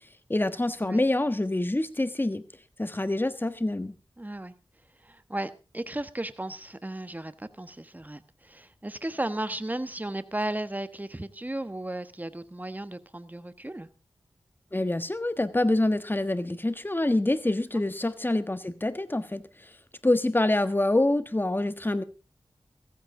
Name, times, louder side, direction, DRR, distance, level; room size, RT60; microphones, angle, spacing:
voice 1, 0.3-2.4 2.8-3.9 14.7-19.4 20.0-22.0, left 1 dB, 20° left, 1.3 m, -26 dB
voice 2, 4.2-4.5 5.0-13.9, right 1 dB, 20° right, 1.2 m, -35 dB
15.5 x 14.5 x 3.7 m
wide cardioid pair, 50°, 9 cm